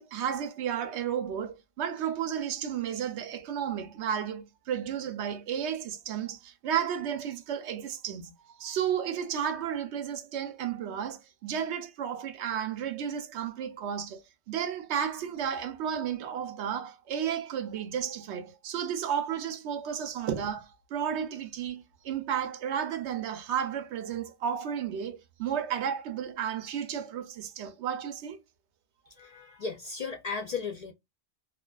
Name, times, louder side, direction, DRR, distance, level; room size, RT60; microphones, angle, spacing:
voice 1, 0.0-8.3 8.6-14.2 14.5-28.4, right 8 dB, 85° right, 0.9 m, -33 dB
voice 2, 29.1-30.9, left 5 dB, 55° left, 0.4 m, -36 dB
2.4 x 2.3 x 2.2 m
omnidirectional pair, 1.1 m